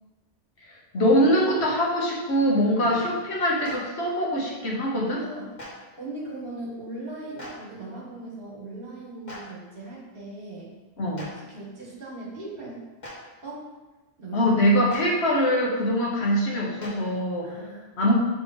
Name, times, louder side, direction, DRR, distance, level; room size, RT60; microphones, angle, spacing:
voice 1, 0.7-5.2 11.0-11.3 14.3-17.5 18.0-18.1, equal, 80° left, -3 dB, 1.5 m, -23 dB
Clapping, 3.6-3.8 5.6-5.7 7.4-7.5 9.3-9.4 11.1-11.3 13.0-13.1 14.9-15.0 16.8-16.9, left 1 dB, 45° left, 1.8 m, -39 dB
voice 2, 5.1-5.5 6.0-10.7 11.4-12.8 13.4-13.7 14.2-14.5 17.4-17.9, right 2 dB, 60° right, -4 dB, 1.8 m, -39 dB
5.9 x 3.7 x 5.1 m, 1.2 s
omnidirectional pair, 1.1 m